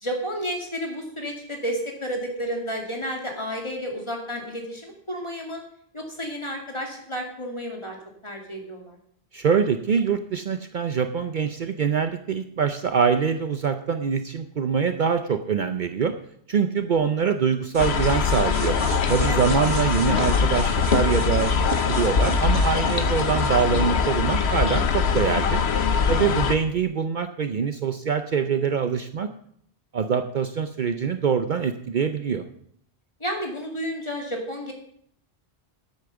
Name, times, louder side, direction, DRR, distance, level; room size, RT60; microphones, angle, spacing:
voice 1, 0.0-5.6 5.9-8.0 8.2-9.0 19.3-19.5 26.1-26.2 33.2-34.7, equal, 25° left, 1 dB, 2.5 m, -31 dB
voice 2, 9.3-16.1 16.5-18.8 19.1-21.5 21.9-25.6 26.1-29.3 29.9-32.4, right 6 dB, 55° right, 9 dB, 0.7 m, -24 dB
sound 1, 17.7-24.1, right 3 dB, 35° right, 1.1 m, -37 dB
sound 2, 17.8-26.5, left 5 dB, 80° left, 1.2 m, -22 dB
9.8 x 8.5 x 6.9 m, 0.67 s
omnidirectional pair, 1.1 m